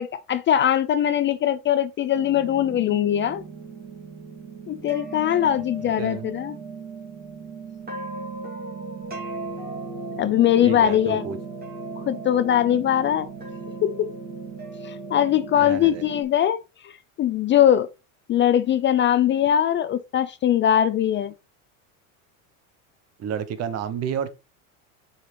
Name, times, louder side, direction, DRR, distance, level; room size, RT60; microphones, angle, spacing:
voice 1, 0.0-3.4 4.7-6.6 10.2-11.2 12.0-13.3 13.8-14.1 14.8-17.9 18.3-21.3, left 10 dB, 30° left, 0.4 m, -21 dB
sound 1, 2.1-16.2, right 3 dB, 20° right, 3.0 m, -37 dB
voice 2, 5.8-6.3 10.6-11.4 15.5-16.0 23.2-24.3, right 8 dB, 40° right, 1.1 m, -30 dB
6.4 x 5.6 x 3.4 m
supercardioid pair, 110°, 40 cm